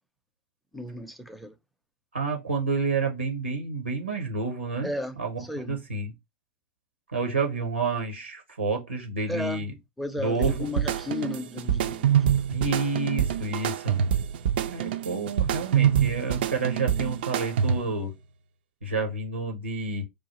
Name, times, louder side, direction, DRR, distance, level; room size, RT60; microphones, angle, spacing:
voice 1, 0.7-1.5 4.8-5.8 9.3-9.7 10.0-12.4, left 2 dB, ahead, 0.5 m, -34 dB
voice 2, 2.1-4.9 5.2-6.1 7.1-9.8 10.2-10.7 12.5-14.0 14.7-18.1 18.8-20.1, right 3 dB, 85° right, 0.8 m, -29 dB
sound 1, 10.4-18.0, right 9 dB, 60° right, 0.4 m, -26 dB
4.8 x 2.4 x 2.9 m
figure-of-eight pair, 90°, 6 cm